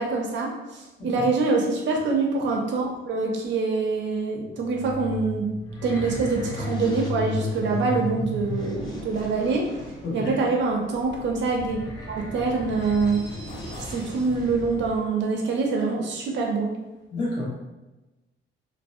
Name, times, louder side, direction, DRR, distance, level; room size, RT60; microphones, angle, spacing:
voice 1, 0.0-5.5 5.8-9.7 10.1-11.8 12.1-13.2 13.8-16.7, right 4 dB, 65° right, 1 dB, 0.5 m, -25 dB
sound 1, 4.5-15.0, left 2 dB, 20° left, 0.3 m, -34 dB
voice 2, 17.1-17.5, left 2 dB, 60° left, -6 dB, 0.9 m, -29 dB
2.6 x 2.0 x 2.4 m, 1.0 s
cardioid pair, 180°, 21 cm